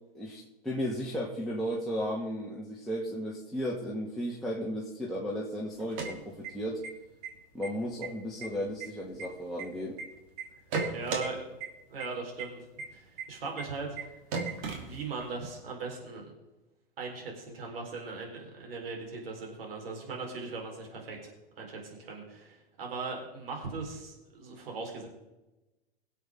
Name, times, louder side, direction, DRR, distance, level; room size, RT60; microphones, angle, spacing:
voice 1, 0.1-6.9 7.5-10.0, equal, ahead, -6 dB, 2.0 m, -34 dB
sound 1, 5.7-6.9 7.2-7.3 7.6-8.1 8.4-10.0 10.4-11.3 11.6-11.7 12.0-12.1 12.4-12.5 12.8-12.9 13.2-13.3 13.6-13.7 14.0-14.1 14.3-15.3, right 4 dB, 60° right, 3.0 m, -35 dB
voice 2, 10.9-11.4 11.9-12.6 12.9-14.0 14.6-16.3 17.0-21.3 21.6-25.1, right 4 dB, 75° right, 0 dB, 4.1 m, -39 dB
23.0 x 7.8 x 3.6 m, 1.0 s
hypercardioid pair, 105°, 29 cm